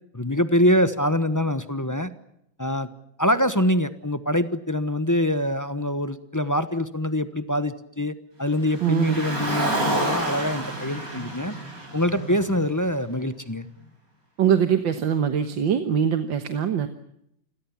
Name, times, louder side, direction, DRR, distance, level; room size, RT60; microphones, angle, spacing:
voice 1, 0.1-2.1 2.6-2.9 3.2-11.5 11.9-13.7, left 1 dB, 15° left, 11 dB, 0.8 m, -24 dB
Car, 8.6-13.0, right 1 dB, 45° right, 7.2 m, -29 dB
voice 2, 8.8-9.2 14.4-16.9, right 8 dB, 70° right, 9 dB, 2.0 m, -22 dB
29.0 x 22.5 x 7.3 m, 0.77 s
omnidirectional pair, 2.2 m